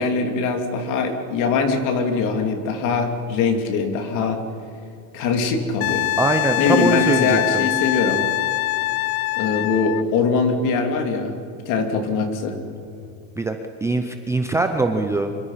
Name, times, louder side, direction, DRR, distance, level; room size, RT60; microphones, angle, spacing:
voice 1, 0.0-4.4 5.1-6.1 6.6-8.2 9.3-11.3 11.7-12.6, left 4 dB, 45° left, 5 dB, 2.9 m, -22 dB
Wind instrument woodwind instrument, 5.8-10.0 12.7-12.9, left 20 dB, 80° left, 0.7 m, -23 dB
voice 2, 6.2-7.7 13.4-13.6 13.8-15.3, right 3 dB, 5° right, 5 dB, 0.6 m, -22 dB
26.0 x 23.0 x 5.7 m, 2.5 s
cardioid pair, 165°, 42 cm